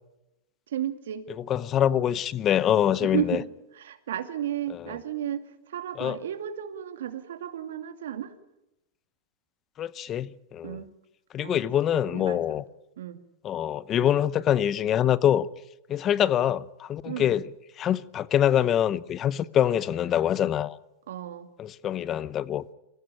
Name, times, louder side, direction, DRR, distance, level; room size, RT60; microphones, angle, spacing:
voice 1, 0.7-1.3 3.0-3.5 3.7-8.3 10.6-10.9 11.4-11.7 12.1-12.6 13.0-13.2 17.0-17.3 21.1-21.5, right 10 dB, 85° right, 2.4 m, -33 dB
voice 2, 1.4-3.4 4.7-5.0 6.0-6.2 9.8-10.8 11.3-12.6 13.4-15.5 15.9-17.5 17.8-20.8 21.6-22.7, left 10 dB, 30° left, 0.8 m, -25 dB
24.0 x 16.0 x 9.9 m
supercardioid pair, 130°, 0 cm